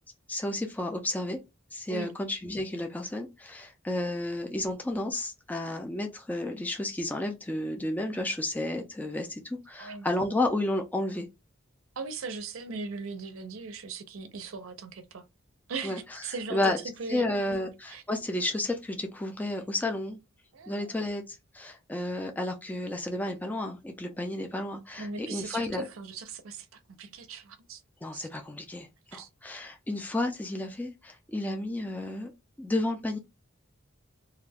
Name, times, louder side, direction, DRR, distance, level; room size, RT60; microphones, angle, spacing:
voice 1, 0.3-1.4 1.7-11.3 15.8-16.0 16.5-16.8 17.1-20.2 20.7-25.9 28.0-32.3 32.6-33.2, left 1 dB, 10° left, 0.3 m, -32 dB
voice 2, 12.0-15.2 15.7-16.7 17.0-17.6 17.9-18.0 20.5-21.0 25.0-27.8 28.1-28.3 29.1-29.3, right 4 dB, 75° right, 0.5 m, -39 dB
2.3 x 2.1 x 3.3 m
head